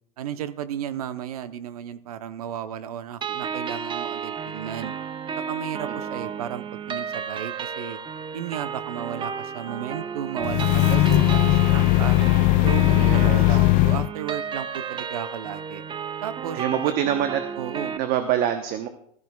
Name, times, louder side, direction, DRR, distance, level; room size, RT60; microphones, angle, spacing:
voice 1, 0.2-4.9 5.4-8.0 8.3-12.2 12.6-15.8 16.2-17.0 17.6-18.0, right 10 dB, 75° right, 12 dB, 0.8 m, -34 dB
sound 1, 3.2-18.0, right 6 dB, 25° right, 0.7 m, -32 dB
sound 2, 10.4-14.1, left 19 dB, 45° left, 0.4 m, -18 dB
voice 2, 13.0-13.6 16.5-17.4 18.0-18.9, right 10 dB, 50° right, 8 dB, 1.0 m, -25 dB
15.5 x 13.5 x 2.3 m, 0.67 s
hypercardioid pair, 90°, 19 cm